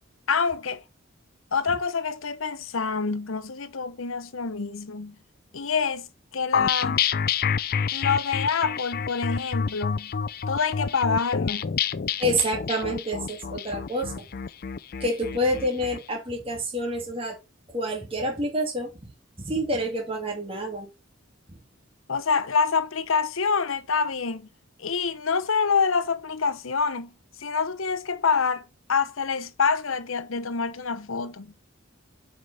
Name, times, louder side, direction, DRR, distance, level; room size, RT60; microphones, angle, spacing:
voice 1, 0.3-0.8 1.5-5.2 5.5-6.1 6.3-7.0 7.9-10.1 10.5-11.7 22.1-24.5 24.8-27.1 27.4-28.6 28.9-31.5, left 5 dB, 75° left, 0.9 m, -26 dB
sound 1, 6.5-16.0, left 7 dB, 45° left, 0.4 m, -28 dB
voice 2, 12.2-14.2 15.0-17.4 17.7-19.1 19.4-20.9, equal, 25° right, 2.4 m, -28 dB
7.7 x 5.1 x 4.1 m
head